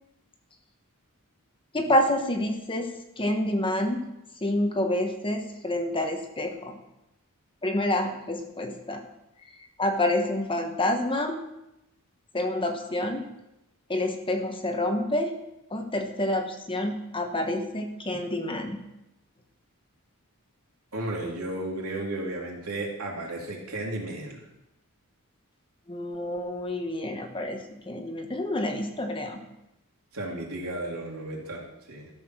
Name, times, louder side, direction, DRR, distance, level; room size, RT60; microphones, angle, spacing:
voice 1, 1.7-2.9 3.2-4.0 4.4-6.8 7.6-9.0 9.8-11.4 12.3-13.2 13.9-15.4 15.7-18.8 25.9-29.4, left 1 dB, 25° left, 4 dB, 1.2 m, -28 dB
voice 2, 20.9-24.4 30.1-32.1, right 1 dB, 80° right, -2 dB, 3.2 m, -34 dB
13.5 x 7.1 x 6.1 m, 0.90 s
head